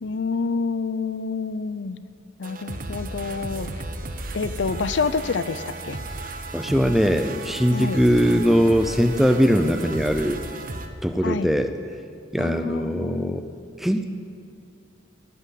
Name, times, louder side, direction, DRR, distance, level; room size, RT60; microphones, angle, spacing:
voice 1, 0.0-2.0 2.4-3.7 4.3-6.0 7.7-8.0 11.2-11.5 12.4-13.4, left 4 dB, 80° left, 14 dB, 0.5 m, -28 dB
sound 1, 2.4-10.9, right 2 dB, 45° right, 0.9 m, -35 dB
voice 2, 6.5-10.4 11.0-11.7 12.3-13.4 13.8-14.1, equal, ahead, 7 dB, 0.5 m, -20 dB
16.0 x 6.0 x 10.0 m, 2.4 s
head